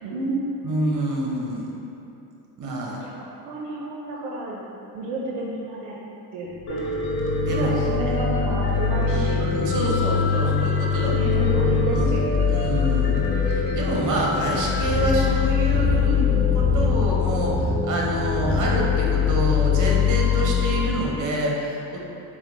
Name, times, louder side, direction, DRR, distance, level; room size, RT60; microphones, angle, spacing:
voice 1, 0.0-0.7 2.9-4.6 4.9-5.9 6.3-6.9 7.5-9.4 9.8-10.5 11.1-12.5 16.1-16.6, right 1 dB, 70° right, -4 dB, 0.7 m, -31 dB
voice 2, 0.6-1.8 2.6-3.1 7.4-8.0 9.4-11.2 11.8-12.0 12.5-13.2 13.5-16.2 16.5-22.0, right 1 dB, 40° right, -2 dB, 0.9 m, -27 dB
sound 1, 6.6-20.9, left 8 dB, 25° left, 0.4 m, -23 dB
Piano, 6.7-15.4, equal, 55° left, 0.9 m, -29 dB
sound 2, 9.4-19.3, right 2 dB, 5° left, 1.3 m, -31 dB
4.4 x 2.3 x 3.7 m, 2.9 s
hypercardioid pair, 60°, 47 cm